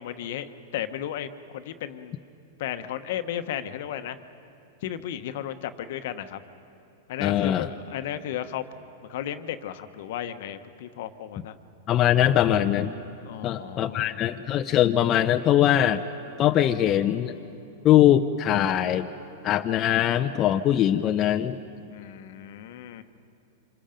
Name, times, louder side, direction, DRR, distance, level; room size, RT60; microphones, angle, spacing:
voice 1, 0.0-2.1 2.6-4.2 4.8-6.4 7.1-8.6 9.1-11.6 13.2-14.2 21.9-23.0, left 10 dB, 65° left, 10 dB, 1.1 m, -34 dB
voice 2, 7.2-7.7 11.9-12.9 13.4-16.0 16.4-17.3 17.8-19.1 19.4-21.6, left 11 dB, 35° left, 7 dB, 0.7 m, -21 dB
27.5 x 26.0 x 5.2 m, 2.8 s
hypercardioid pair, 125°, 0 cm